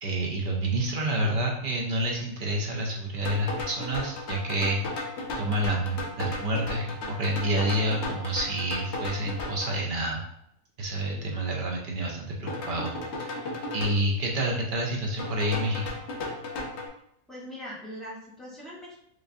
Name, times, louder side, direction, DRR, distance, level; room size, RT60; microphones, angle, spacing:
voice 1, 0.0-10.2 10.8-12.9 13.2-13.5 13.7-15.8, right 1 dB, 60° right, -1 dB, 0.5 m, -28 dB
sound 1, 3.2-9.8 12.5-13.9 15.2-16.9, left 2 dB, 55° left, 0.9 m, -35 dB
voice 2, 17.3-19.0, equal, ahead, -8 dB, 1.1 m, -41 dB
4.9 x 2.5 x 2.5 m, 0.76 s
omnidirectional pair, 1.6 m